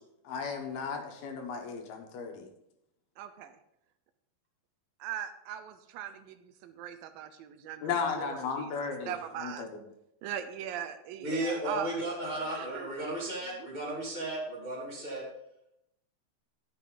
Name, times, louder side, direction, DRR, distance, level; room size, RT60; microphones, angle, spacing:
voice 1, 0.2-2.5 7.8-9.1 9.4-9.7, left 5 dB, 75° left, 4 dB, 3.0 m, -35 dB
voice 2, 3.2-3.6 5.0-8.7 9.1-9.7 10.2-11.9 12.5-12.9 13.6-13.7, right 9 dB, 80° right, 10 dB, 2.2 m, -40 dB
voice 3, 11.2-15.3, right 1 dB, 20° left, -4 dB, 1.3 m, -34 dB
10.5 x 8.2 x 3.9 m, 0.82 s
omnidirectional pair, 4.5 m